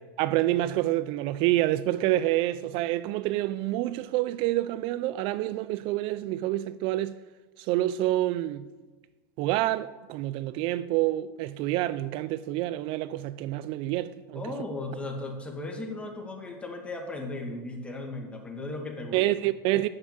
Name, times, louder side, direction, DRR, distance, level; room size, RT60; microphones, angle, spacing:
voice 1, 0.2-7.1 7.6-8.7 9.4-14.5 19.1-19.9, right 15 dB, 50° right, 0.4 m, -27 dB
voice 2, 14.3-19.2, left 2 dB, 10° left, 2.0 m, -36 dB
9.7 x 6.4 x 7.8 m
supercardioid pair, 125°, 11 cm